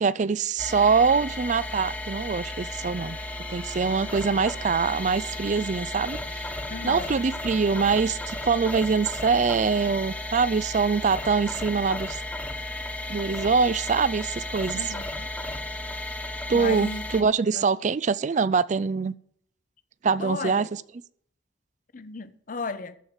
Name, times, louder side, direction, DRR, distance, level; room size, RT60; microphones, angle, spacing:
voice 1, 0.0-3.2 3.5-6.4 6.8-12.2 13.1-14.8 16.5-19.2 20.0-20.7, right 5 dB, 40° right, 0.4 m, -24 dB
sound 1, 0.6-17.2, left 1 dB, 10° left, 1.2 m, -34 dB
Bowed string instrument, 3.1-9.3, right 1 dB, 25° right, 1.0 m, -50 dB
voice 2, 6.7-7.2 14.8-15.3 16.5-17.0 17.5-17.7 20.2-20.7 21.9-23.0, left 3 dB, 50° left, 0.8 m, -35 dB
13.5 x 4.7 x 9.0 m
head